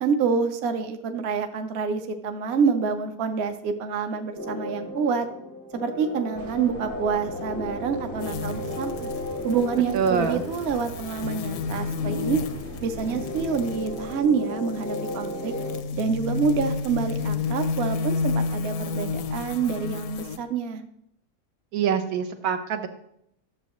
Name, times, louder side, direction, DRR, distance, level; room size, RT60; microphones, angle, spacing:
voice 1, 0.0-5.3 5.7-9.1 9.4-12.4 12.8-15.5 15.9-20.8, right 6 dB, 55° right, 7 dB, 0.9 m, -27 dB
sound 1, 4.3-15.8, left 1 dB, 15° left, 0.4 m, -35 dB
sound 2, 6.4-14.2, right 3 dB, 40° right, 0.5 m, -43 dB
sound 3, 8.2-20.4, left 5 dB, 70° left, 0.8 m, -31 dB
voice 2, 9.9-10.4 21.7-22.9, right 7 dB, 80° right, 7 dB, 1.2 m, -25 dB
11.0 x 7.1 x 3.0 m, 0.75 s
omnidirectional pair, 1.6 m